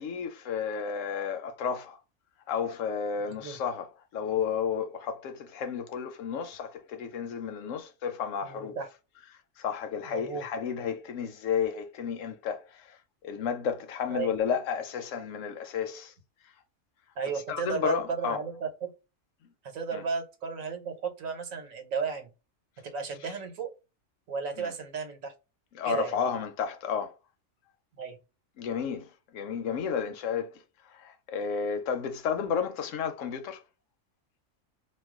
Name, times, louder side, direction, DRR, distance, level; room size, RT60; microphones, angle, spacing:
voice 1, 0.0-2.0 2.5-3.9 4.1-8.7 9.6-12.6 13.2-16.1 17.5-18.4 19.9-20.0 24.6-24.7 25.8-27.1 28.6-29.1 29.3-30.5 31.0-33.6, left 7 dB, 75° left, 1.0 m, -32 dB
voice 2, 3.2-3.6 8.4-8.9 10.0-10.5 14.1-14.3 17.2-18.9 19.6-22.3 22.8-23.7 24.3-25.3 25.8-26.2 28.0-28.2, right 5 dB, 90° right, 1.2 m, -34 dB
2.4 x 2.3 x 3.5 m
omnidirectional pair, 1.3 m